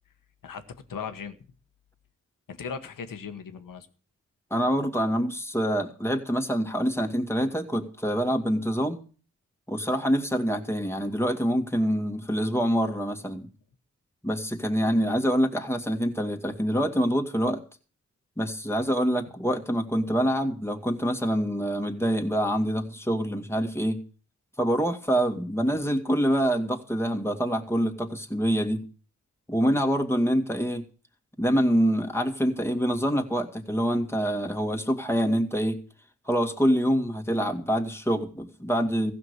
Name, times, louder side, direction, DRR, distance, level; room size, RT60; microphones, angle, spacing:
voice 1, 0.4-1.4 2.5-3.9, left 6 dB, 85° left, 9 dB, 1.4 m, -37 dB
voice 2, 4.5-9.0 9.7-13.5 14.2-17.6 18.4-24.0 24.6-28.8 29.5-30.8 31.4-35.8 36.3-39.1, equal, 10° left, 3 dB, 2.2 m, -26 dB
15.5 x 6.0 x 8.2 m, 0.39 s
cardioid pair, 60°, 32 cm